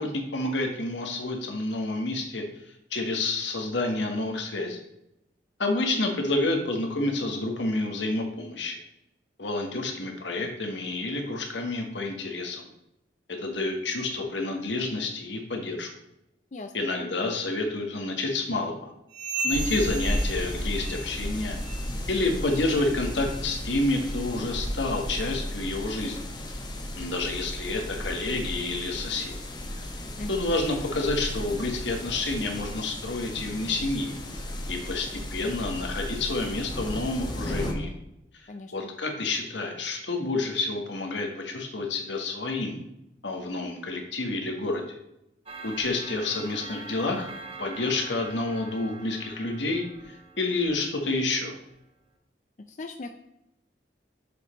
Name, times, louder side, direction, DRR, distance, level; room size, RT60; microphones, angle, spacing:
voice 1, 0.0-2.4 2.9-4.8 5.6-8.8 9.4-12.7 13.3-15.9 16.7-18.9 19.4-21.6 22.1-26.3 27.0-29.3 30.3-34.2 34.7-37.9 38.3-42.8 43.2-45.0 45.6-47.3 47.6-51.5, left 2 dB, 85° left, 3 dB, 1.4 m, -29 dB
sound 1, 19.1-21.3 21.6-22.0 22.4-22.7 23.3-23.4 24.1-24.2 25.0-25.1, right 3 dB, 75° right, 0.9 m, -35 dB
sound 2, 19.5-37.7, left 1 dB, 25° left, 0.8 m, -34 dB
voice 2, 38.5-38.9 52.7-53.1, left 2 dB, 40° left, 5 dB, 0.4 m, -38 dB
Clock, 45.5-51.4, right 3 dB, 30° right, 0.8 m, -44 dB
6.8 x 5.2 x 4.2 m, 0.84 s
head